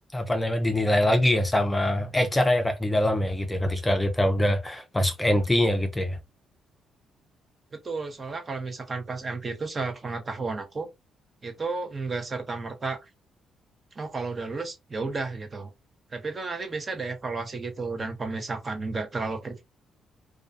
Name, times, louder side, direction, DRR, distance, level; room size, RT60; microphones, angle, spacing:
voice 1, 0.1-6.2, left 1 dB, 15° left, 0.5 m, -24 dB
voice 2, 7.8-10.9 11.4-13.1 14.0-15.7 16.1-19.6, right 3 dB, 35° right, 0.7 m, -32 dB
2.3 x 2.3 x 2.4 m
cardioid pair, 90°, 0 cm